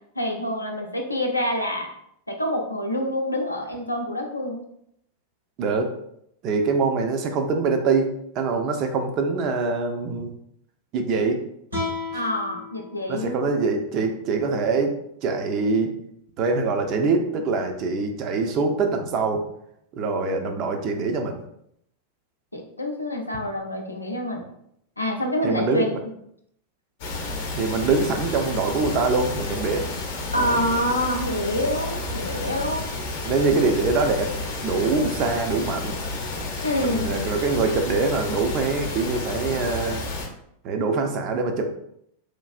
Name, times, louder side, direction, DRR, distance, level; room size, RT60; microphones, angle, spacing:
voice 1, 0.2-1.9 2.3-4.7 12.1-13.5 22.5-24.4 25.0-25.9 30.3-32.8 36.6-37.1, left 1 dB, 85° left, 2 dB, 0.4 m, -26 dB
voice 2, 5.6-5.9 6.4-10.3 10.9-11.4 13.1-15.9 16.4-19.4 19.9-21.4 25.4-25.8 27.5-29.8 30.3-30.6 33.2-34.3 34.6-35.9 36.8-40.0 40.6-41.7, right 4 dB, 40° right, 4 dB, 0.4 m, -24 dB
sound 1, 11.7-14.9, left 3 dB, 85° right, 1.2 m, -35 dB
sound 2, 27.0-40.3, left 2 dB, 50° left, 0.7 m, -31 dB
3.1 x 2.3 x 2.4 m, 0.73 s
figure-of-eight pair, 90°, 0 cm